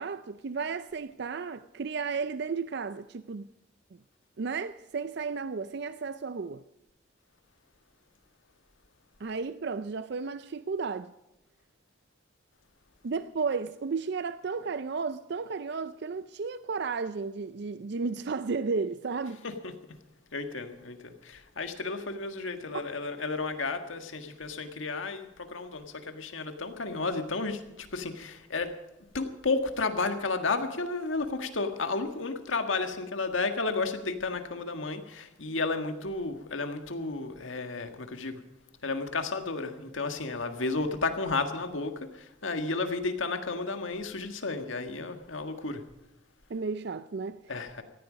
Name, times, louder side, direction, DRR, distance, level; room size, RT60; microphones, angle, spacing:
voice 1, 0.0-3.5 3.9-4.0 4.4-6.6 9.2-11.1 13.0-19.4 46.5-47.4, right 4 dB, 60° right, 0.5 m, -33 dB
voice 2, 20.3-28.7 29.1-38.4 38.8-45.8 47.5-47.8, left 3 dB, 90° left, 1.7 m, -32 dB
18.0 x 13.5 x 5.2 m
head